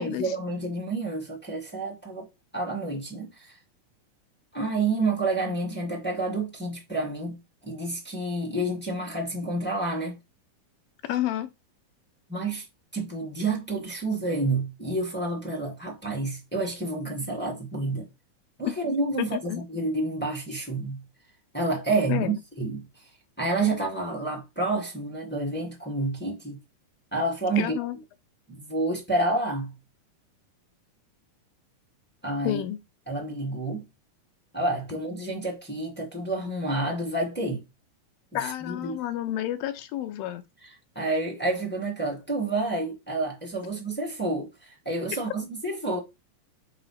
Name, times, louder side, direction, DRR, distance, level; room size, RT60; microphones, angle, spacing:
voice 1, 0.0-2.3 2.5-3.6 4.5-7.4 7.6-10.2 12.3-12.6 12.9-18.1 18.6-21.0 21.5-22.9 23.4-26.6 27.1-27.8 28.5-29.7 32.2-32.6 33.1-33.8 34.5-37.6 38.3-39.0 40.9-46.0, right 2 dB, 10° left, 0.6 m, -29 dB
voice 2, 11.1-11.5 19.2-19.6 22.1-22.4 27.6-28.0 32.4-32.8 38.3-40.5, left 13 dB, 85° left, 2.6 m, -30 dB
6.8 x 3.0 x 5.7 m
omnidirectional pair, 4.1 m